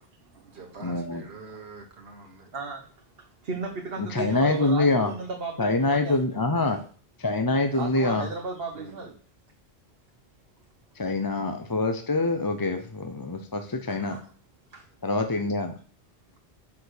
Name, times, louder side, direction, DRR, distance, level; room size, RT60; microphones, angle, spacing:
voice 1, 0.0-2.5 8.7-9.0, right 4 dB, 85° right, 1 dB, 1.5 m, -46 dB
voice 2, 0.8-1.2 4.0-5.1 5.6-6.8 7.2-8.3 11.0-14.2 15.0-15.7, left 2 dB, 25° left, 6 dB, 0.6 m, -25 dB
voice 3, 2.5-6.3 6.7-6.8 7.7-9.1 13.8-14.3 14.7-14.9, right 3 dB, 70° right, 1 dB, 1.4 m, -36 dB
6.8 x 4.8 x 6.4 m, 0.43 s
omnidirectional pair, 1.0 m